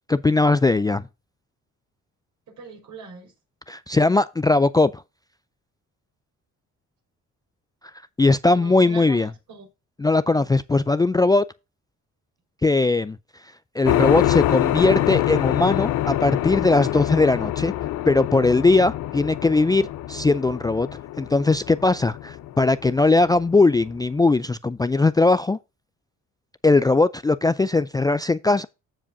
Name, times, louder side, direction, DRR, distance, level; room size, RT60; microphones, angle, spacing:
voice 1, 0.1-1.1 3.7-5.0 8.2-9.3 10.0-11.4 12.6-13.2 13.8-17.7 18.1-20.9 21.2-25.6 26.6-28.7, left 3 dB, 15° left, 0.3 m, -19 dB
voice 2, 2.5-3.3 8.4-9.7, right 4 dB, 70° right, 4.8 m, -41 dB
sound 1, 13.9-24.0, left 14 dB, 80° left, 0.5 m, -25 dB
15.0 x 5.0 x 2.6 m
cardioid pair, 90°, 30 cm